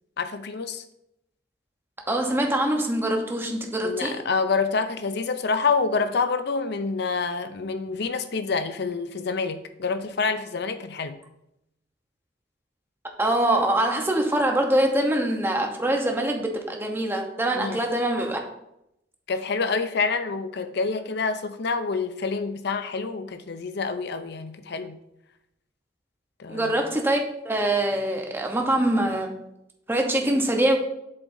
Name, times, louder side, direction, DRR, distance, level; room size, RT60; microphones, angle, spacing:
voice 1, 0.2-0.8 3.8-11.2 17.5-17.8 19.3-25.0 26.4-26.7, left 4 dB, 65° left, 10 dB, 0.6 m, -27 dB
voice 2, 2.1-4.2 13.2-18.4 26.5-29.3 29.9-30.8, right 1 dB, 10° right, 2 dB, 1.0 m, -24 dB
7.8 x 7.2 x 2.7 m, 0.82 s
head